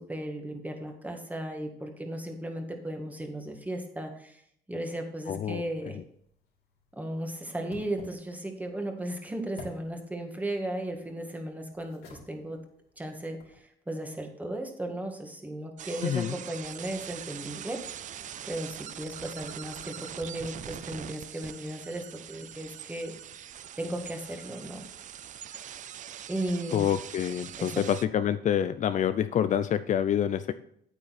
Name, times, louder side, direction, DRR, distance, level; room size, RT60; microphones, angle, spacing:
voice 1, 0.0-4.4 4.7-6.0 6.9-12.6 13.0-17.8 18.4-23.1 23.8-24.8 26.3-26.9 27.6-27.9, right 1 dB, 10° right, 3 dB, 1.9 m, -36 dB
voice 2, 5.3-5.6 16.0-16.3 26.7-30.5, left 9 dB, 45° left, 12 dB, 0.5 m, -27 dB
sound 1, 5.9-13.6, left 3 dB, 75° left, 3.5 m, -53 dB
sound 2, 15.8-28.1, right 10 dB, 50° right, 0.5 m, -43 dB
9.1 x 8.6 x 4.2 m, 0.67 s
cardioid pair, 110°, 17 cm